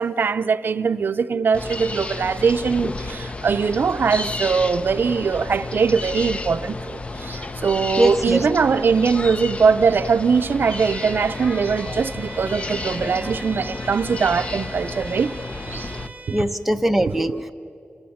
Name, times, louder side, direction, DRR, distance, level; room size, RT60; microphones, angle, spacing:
voice 1, 0.0-15.3 15.7-15.9 16.3-16.4 17.0-17.5, right 5 dB, 65° right, 0.5 m, -21 dB
sound 1, 1.5-16.1, left 2 dB, 30° left, 0.6 m, -32 dB
voice 2, 8.0-8.4 16.3-17.5, right 1 dB, 5° right, 0.8 m, -21 dB
Bowed string instrument, 10.7-16.5, right 3 dB, 35° right, 2.1 m, -40 dB
26.5 x 21.0 x 7.1 m
wide cardioid pair, 145°, 4 cm